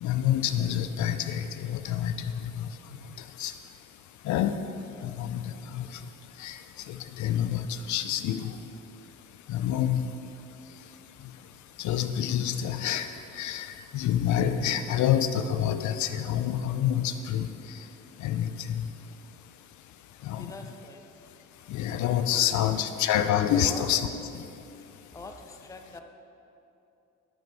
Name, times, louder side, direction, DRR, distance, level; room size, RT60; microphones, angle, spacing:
voice 1, 0.0-2.7 3.4-3.5 4.3-4.6 5.0-5.8 6.4-6.6 6.9-8.4 9.5-10.1 11.8-13.1 13.4-17.5 18.2-18.9 20.2-20.5 21.7-24.1, left 10 dB, 70° left, 9 dB, 0.5 m, -27 dB
voice 2, 20.4-21.0 22.3-22.7 23.5-23.8 25.1-26.0, left 3 dB, 10° left, 5 dB, 0.5 m, -43 dB
6.3 x 6.2 x 5.2 m, 2.9 s
cardioid pair, 90°, 30 cm